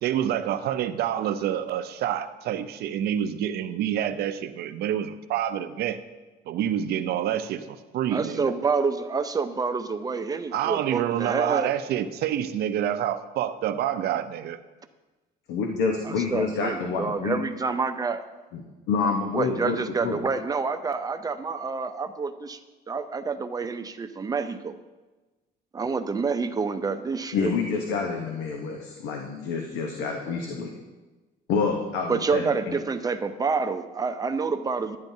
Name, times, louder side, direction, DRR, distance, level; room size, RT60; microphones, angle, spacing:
voice 1, 0.0-6.0 6.5-8.5 10.5-14.6, right 10 dB, 70° right, 11 dB, 0.5 m, -27 dB
voice 2, 8.1-11.7 16.0-18.2 19.3-22.6 22.9-24.8 25.7-27.5 32.1-35.0, right 4 dB, 20° right, 9 dB, 0.6 m, -28 dB
voice 3, 15.5-17.4 18.5-18.6 18.9-20.2 27.3-30.7 31.5-32.8, left 5 dB, 90° left, 2 dB, 0.9 m, -28 dB
11.5 x 9.4 x 2.7 m, 1.2 s
cardioid pair, 110°, 17 cm